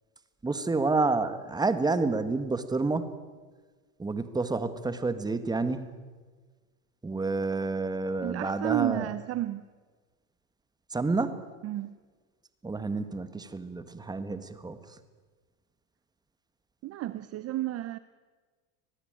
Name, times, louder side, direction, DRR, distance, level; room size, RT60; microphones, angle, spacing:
voice 1, 0.4-3.1 4.0-5.9 7.0-9.1 10.9-11.4 12.6-15.0, right 3 dB, 10° right, 11 dB, 1.6 m, -29 dB
voice 2, 8.2-9.7 11.6-12.0 16.8-18.0, right 15 dB, 35° right, 15 dB, 0.7 m, -31 dB
25.5 x 18.0 x 9.0 m, 1.4 s
supercardioid pair, 125°, 43 cm